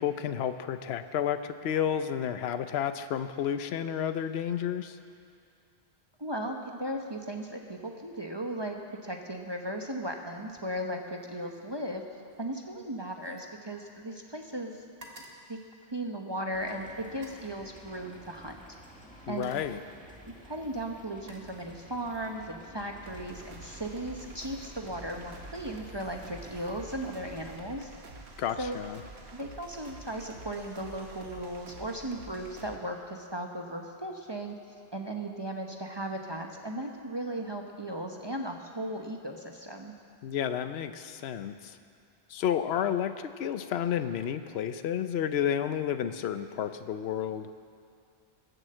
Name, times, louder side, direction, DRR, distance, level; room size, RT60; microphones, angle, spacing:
voice 1, 0.0-5.0 19.3-19.8 28.4-29.0 40.2-41.8 42.3-47.5, left 9 dB, 80° left, 10 dB, 0.9 m, -31 dB
voice 2, 6.2-8.8 9.0-12.0 12.4-14.8 15.1-15.2 15.5-15.6 15.9-18.6 19.3-19.6 20.4-27.9 28.6-28.8 29.3-34.5 34.9-39.9, right 1 dB, 25° right, 2 dB, 1.0 m, -36 dB
sound 1, 10.5-10.9 11.2-14.3 14.6-16.5 17.1-17.6 18.6-18.8 19.2-19.9 20.7-22.1 22.5-22.9, right 1 dB, 65° right, 1.9 m, -55 dB
sound 2, 16.5-27.6, equal, 5° left, 1.7 m, -51 dB
sound 3, 23.0-32.8, right 3 dB, 80° right, 1.5 m, -48 dB
20.5 x 7.9 x 7.7 m, 2.4 s
omnidirectional pair, 1.1 m